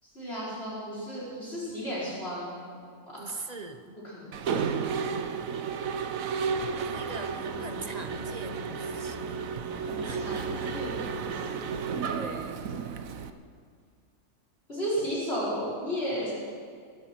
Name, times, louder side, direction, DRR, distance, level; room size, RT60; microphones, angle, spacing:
voice 1, 0.0-3.2 4.0-4.6 4.9-5.0 9.7-11.7 14.7-16.3, equal, 40° left, -8 dB, 4.8 m, -34 dB
voice 2, 3.2-4.0 6.7-9.4 10.0-10.7 12.0-12.7, right 3 dB, 35° right, 7 dB, 0.7 m, -42 dB
Mechanisms, 4.3-13.3, right 6 dB, 65° right, 1.2 m, -32 dB
sound 1, 6.5-12.1, equal, 15° right, 3.3 m, -44 dB
22.0 x 14.5 x 4.5 m, 2.2 s
omnidirectional pair, 1.6 m